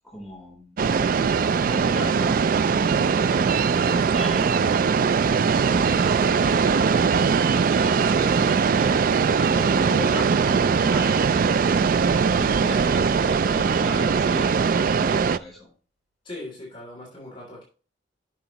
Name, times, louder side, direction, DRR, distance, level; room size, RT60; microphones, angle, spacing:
voice 1, 0.0-0.7 1.3-9.0 9.4-11.2 12.0-14.6 15.0-15.7, equal, ahead, -4 dB, 3.7 m, -37 dB
sound 1, 0.8-15.4, right 5 dB, 50° right, 0.3 m, -21 dB
voice 2, 12.2-12.6 16.2-17.6, left 1 dB, 30° left, -3 dB, 2.9 m, -40 dB
11.0 x 5.8 x 2.9 m, 0.38 s
head